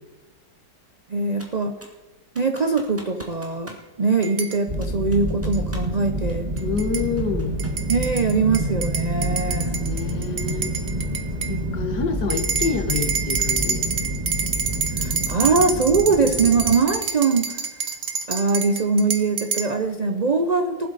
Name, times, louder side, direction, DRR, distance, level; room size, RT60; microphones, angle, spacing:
voice 1, 1.1-1.7 2.4-6.5 7.9-9.8 11.4-11.8 15.0-17.6 18.3-20.9, right 4 dB, 85° right, 7 dB, 0.3 m, -22 dB
Computer keyboard, 1.4-2.0 2.4-4.1 4.8-6.0 6.3-7.9, equal, 10° right, 1.6 m, -45 dB
sound 1, 4.2-4.6 5.5-5.6 6.6-7.1 7.6-11.6 12.3-19.7, right 5 dB, 45° right, 1.1 m, -28 dB
sound 2, 4.7-16.7, right 1 dB, 25° right, 1.4 m, -28 dB
voice 2, 6.6-7.6 9.5-10.7 11.5-13.8, left 5 dB, 70° left, 6 dB, 1.9 m, -27 dB
19.0 x 11.5 x 4.1 m, 1.2 s
omnidirectional pair, 1.8 m